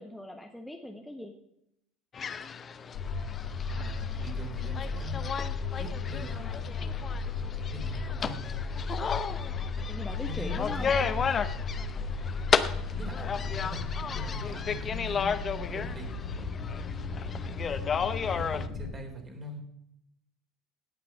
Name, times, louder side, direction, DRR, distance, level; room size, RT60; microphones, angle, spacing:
voice 1, 0.0-1.3 9.3-10.9, left 1 dB, 5° left, 3 dB, 1.3 m, -41 dB
sound 1, 2.1-18.7, left 6 dB, 35° left, 0.8 m, -34 dB
sound 2, 2.9-18.9, left 4 dB, 60° left, 2.0 m, -35 dB
voice 2, 3.7-5.2 5.7-6.6 7.7-8.5 10.3-11.3 12.9-15.3 15.7-16.5 18.2-19.6, equal, 30° right, 3 dB, 3.6 m, -43 dB
17.0 x 6.0 x 5.9 m, 0.80 s
figure-of-eight pair, 65°, 0 cm